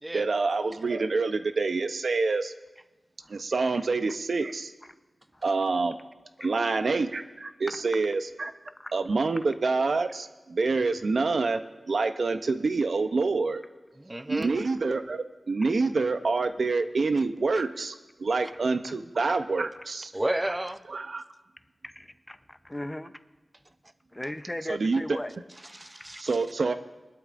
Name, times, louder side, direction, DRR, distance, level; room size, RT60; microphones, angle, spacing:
voice 1, 0.1-2.5 3.3-4.7 5.4-6.0 6.4-8.5 8.9-11.6 11.9-13.6 14.3-17.9 18.2-20.1 20.9-21.2 24.7-25.2 26.2-26.7, right 3 dB, 70° right, 10 dB, 0.6 m, -27 dB
voice 2, 14.0-14.5 20.1-20.8 25.6-26.3, right 1 dB, 20° right, 12 dB, 0.6 m, -32 dB
voice 3, 21.8-23.1 24.1-25.3, left 1 dB, 20° left, 11 dB, 0.7 m, -37 dB
20.5 x 12.0 x 2.5 m, 1.1 s
cardioid pair, 40°, 0 cm